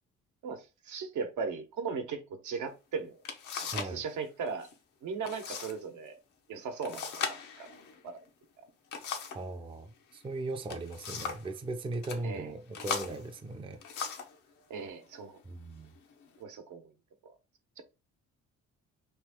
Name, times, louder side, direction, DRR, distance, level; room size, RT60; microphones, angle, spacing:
voice 1, 0.4-3.1 3.6-4.7 5.0-6.2 6.5-7.7 8.0-8.2 12.2-12.5 14.7-15.4 16.4-16.9 17.2-17.3 17.8-17.9, right 5 dB, 75° right, 0.9 m, -38 dB
sound 1, 2.7-2.8 3.2-4.0 4.3-4.7 5.2-5.8 6.1-6.2 6.8-9.5 10.5-11.5 11.9-12.2 12.7-14.4 15.1-15.3 15.9-16.4, left 6 dB, 75° left, 0.8 m, -38 dB
voice 2, 3.7-4.0 9.3-13.8 15.5-15.9, right 2 dB, 20° right, 0.5 m, -38 dB
3.1 x 2.5 x 3.5 m
cardioid pair, 90°, 30 cm